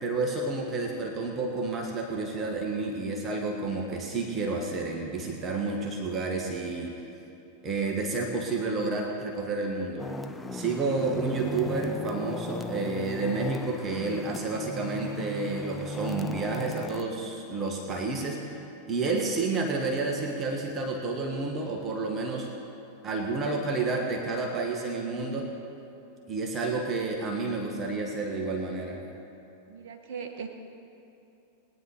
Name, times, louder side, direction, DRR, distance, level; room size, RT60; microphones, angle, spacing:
voice 1, 0.0-7.1 7.6-10.1 10.5-22.5 23.0-25.5 26.3-29.0, right 3 dB, 25° right, 0 dB, 1.8 m, -30 dB
sound 1, 10.0-17.0, left 1 dB, 10° left, 0.6 m, -37 dB
voice 2, 29.7-30.5, right 6 dB, 45° right, 3 dB, 1.5 m, -39 dB
20.5 x 9.9 x 5.2 m, 2.8 s
figure-of-eight pair, 90°, 0 cm